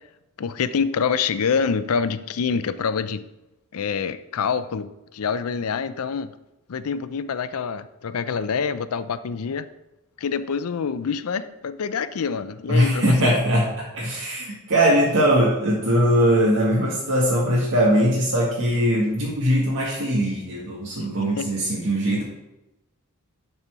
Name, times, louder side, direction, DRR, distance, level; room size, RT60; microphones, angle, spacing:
voice 1, 0.4-3.2 3.7-6.3 6.7-9.7 10.2-13.4 21.4-21.5, left 6 dB, 75° left, 13 dB, 0.5 m, -26 dB
voice 2, 12.7-22.2, equal, 60° right, -6 dB, 1.9 m, -21 dB
12.0 x 4.4 x 4.7 m, 0.97 s
head